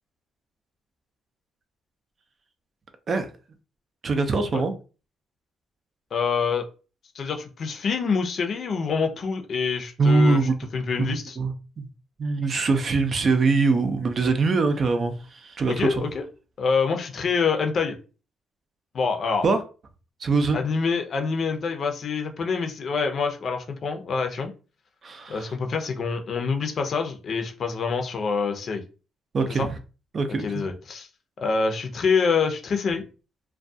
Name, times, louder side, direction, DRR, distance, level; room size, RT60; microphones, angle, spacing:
voice 1, 4.0-4.7 10.0-10.6 11.0-11.9 12.2-16.1 19.4-19.6 20.2-20.6 25.0-25.5 29.3-29.7 30.1-30.6, right 3 dB, 45° right, 0.5 m, -23 dB
voice 2, 6.1-6.7 7.1-10.4 10.7-11.4 15.7-16.2 16.6-18.0 18.9-19.5 20.5-24.5 25.3-28.8 29.6-29.7 30.4-31.1 31.4-33.0, left 5 dB, 55° left, 0.6 m, -26 dB
2.3 x 2.2 x 2.6 m
cardioid pair, 85°, 0 cm